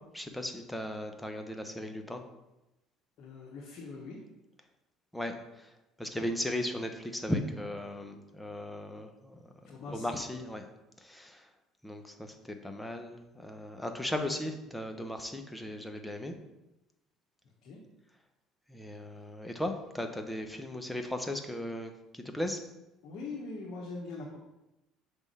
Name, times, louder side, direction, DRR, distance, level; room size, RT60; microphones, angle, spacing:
voice 1, 0.1-2.2 5.1-5.7 6.0-9.4 9.9-10.7 11.0-11.5 11.8-16.3 18.7-22.6, left 1 dB, 5° left, 5 dB, 0.9 m, -37 dB
voice 2, 3.2-4.2 9.6-10.2 17.6-17.8 23.0-24.4, left 3 dB, 65° left, -4 dB, 1.2 m, -42 dB
6.0 x 3.6 x 5.5 m, 0.96 s
supercardioid pair, 85°, 0 cm